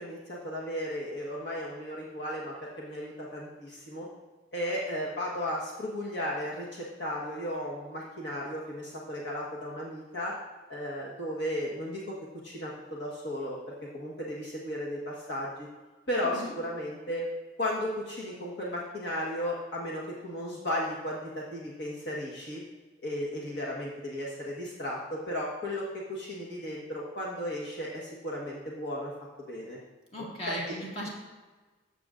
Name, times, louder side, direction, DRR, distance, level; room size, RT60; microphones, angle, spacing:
voice 1, 0.0-4.1 4.5-10.3 10.7-12.2 12.4-15.7 16.1-17.3 17.6-22.6 23.0-29.1 29.5-29.8 30.5-30.7, equal, 55° left, -4 dB, 1.3 m, -35 dB
voice 2, 30.1-31.1, equal, 30° left, -4 dB, 1.9 m, -37 dB
13.5 x 6.9 x 2.5 m, 1.3 s
head